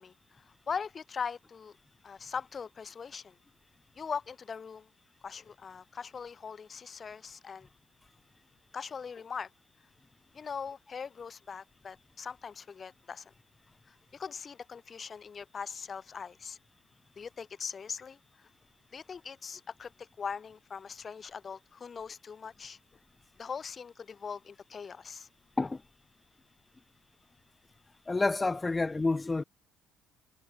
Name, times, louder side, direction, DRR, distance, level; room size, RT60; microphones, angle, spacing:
voice 1, 0.0-1.7 2.0-3.4 3.9-4.9 5.2-7.7 8.7-9.5 10.3-13.2 14.1-16.6 17.2-18.2 18.9-22.8 23.4-25.3, left 6 dB, 40° left, 1.7 m, -41 dB
voice 2, 28.1-29.4, left 3 dB, 20° left, 0.7 m, -29 dB
hypercardioid pair, 55°, 0 cm